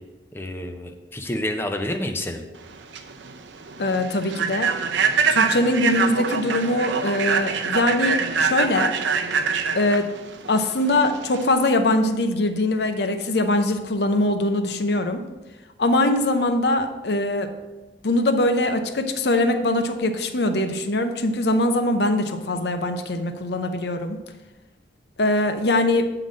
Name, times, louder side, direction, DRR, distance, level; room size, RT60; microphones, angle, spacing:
voice 1, 0.3-2.4, left 1 dB, 15° left, 5 dB, 0.6 m, -29 dB
Human voice / Train, 2.6-11.5, right 5 dB, 90° right, 0.6 m, -24 dB
voice 2, 3.8-4.7 5.3-8.9 9.7-10.1 10.5-15.2 15.8-17.5 18.0-24.2 25.2-26.1, left 1 dB, 65° left, 7 dB, 0.7 m, -22 dB
8.9 x 3.9 x 6.2 m, 1.1 s
head